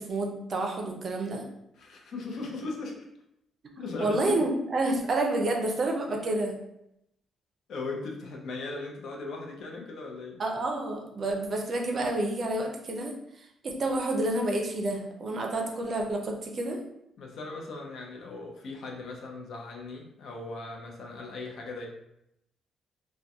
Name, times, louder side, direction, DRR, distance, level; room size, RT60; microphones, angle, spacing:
voice 1, 0.0-1.4 3.8-6.6 10.4-16.8, right 2 dB, 50° right, 2 dB, 0.4 m, -29 dB
voice 2, 1.8-3.0 3.8-4.5 7.7-10.4 17.2-21.9, left 3 dB, 65° left, 1 dB, 0.5 m, -38 dB
2.6 x 2.1 x 2.3 m, 0.80 s
cardioid pair, 90°, 0 cm